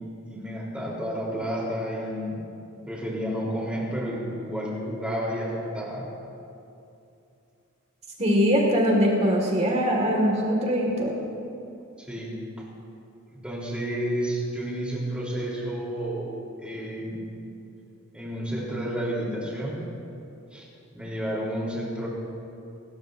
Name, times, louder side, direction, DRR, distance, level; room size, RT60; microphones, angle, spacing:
voice 1, 0.3-2.4 2.9-6.1 12.0-12.7 13.4-16.3 16.6-17.2 18.1-19.8 20.5-20.7 20.9-22.1, equal, 5° right, -5 dB, 3.8 m, -31 dB
voice 2, 8.2-11.2, equal, 30° right, -1 dB, 2.1 m, -22 dB
29.5 x 14.0 x 2.7 m, 2.6 s
head